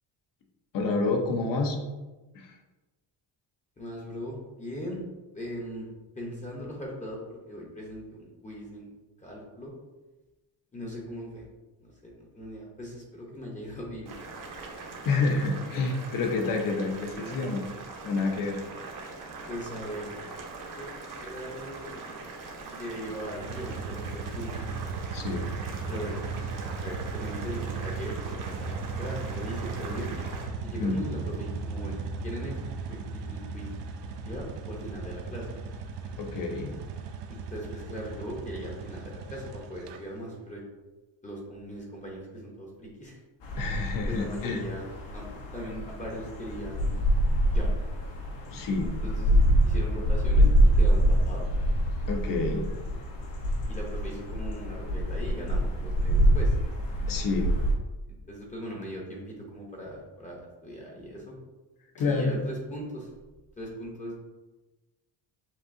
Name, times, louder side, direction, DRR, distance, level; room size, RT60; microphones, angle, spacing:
voice 1, 0.7-1.8 2.3-2.5 15.0-17.6 18.0-18.6 25.1-25.4 30.8-31.0 36.2-36.8 43.6-44.6 48.5-48.9 52.1-52.6 57.1-57.5 61.9-62.3, left 3 dB, 50° left, 3 dB, 0.7 m, -28 dB
voice 2, 3.8-5.0 5.3-5.9 6.2-8.9 9.2-9.7 10.7-11.5 11.8-14.1 19.5-20.1 20.7-20.9 21.2-22.0 22.7-24.7 25.9-26.2 26.8-28.7 29.0-30.2 30.6-32.6 32.9-33.7 34.2-35.5 37.5-40.6 41.2-43.2 44.1-45.2 45.5-47.0 47.5-47.7 49.0-51.5 53.7-56.6 58.3-61.4 62.0-63.1 63.6-64.1, equal, 15° left, -3 dB, 0.7 m, -39 dB
Boiling, 14.1-30.5, right 3 dB, 50° right, 0.8 m, -42 dB
sound 1, 23.4-40.0, right 4 dB, 70° right, 0.6 m, -36 dB
sound 2, 43.4-57.7, equal, 70° left, 1.1 m, -25 dB
7.2 x 2.6 x 2.6 m, 1.1 s
cardioid pair, 170°, 43 cm